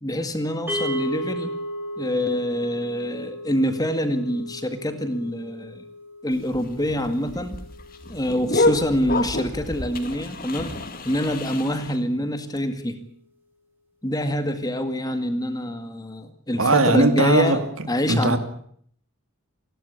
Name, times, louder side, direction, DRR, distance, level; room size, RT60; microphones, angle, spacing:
voice 1, 0.0-1.5 2.0-5.8 6.2-7.6 8.1-10.8 11.0-13.0 14.0-17.6 17.9-18.4, equal, 15° left, 2.0 m, -26 dB
sound 1, 0.7-11.0, equal, 10° right, 4.6 m, -36 dB
sound 2, 6.3-12.0, left 2 dB, 40° left, 2.4 m, -28 dB
voice 2, 16.6-17.6 18.1-18.4, right 2 dB, 65° right, 2.6 m, -19 dB
28.0 x 12.5 x 10.0 m
head